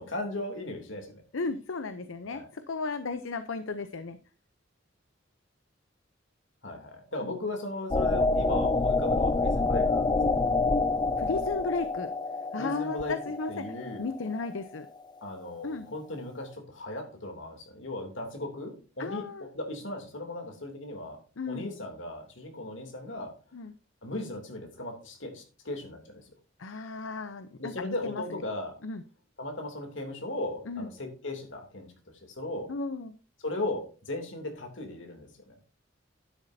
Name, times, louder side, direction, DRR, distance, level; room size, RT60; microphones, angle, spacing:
voice 1, 0.0-1.2 2.2-2.5 6.6-10.6 12.6-13.1 13.5-14.1 15.2-19.3 19.5-21.2 21.5-23.3 24.0-26.3 27.6-28.7 29.4-31.9 32.2-32.7 33.4-35.8, left 2 dB, 70° left, 3 dB, 3.0 m, -37 dB
voice 2, 1.3-4.2 7.2-7.4 11.2-12.1 12.5-13.7 14.0-14.9 15.6-15.9 19.0-19.5 21.4-21.7 23.5-23.7 26.6-28.2 28.8-29.0 30.7-30.9 32.7-33.1, left 3 dB, 85° left, 11 dB, 0.7 m, -34 dB
sound 1, 7.9-14.5, left 3 dB, 20° left, 0.5 m, -27 dB
11.5 x 9.9 x 2.8 m, 0.36 s
head